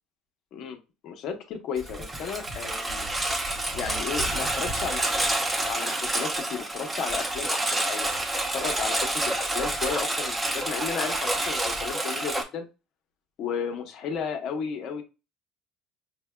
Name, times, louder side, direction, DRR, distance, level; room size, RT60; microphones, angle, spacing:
voice 1, 1.0-3.1 3.7-5.2 5.6-8.1 8.5-12.7 13.4-15.0, left 6 dB, 60° left, 6 dB, 0.9 m, -34 dB
Engine, 1.8-12.4, right 1 dB, 15° right, 0.8 m, -28 dB
5.8 x 2.2 x 2.2 m, 0.29 s
supercardioid pair, 100°, 0 cm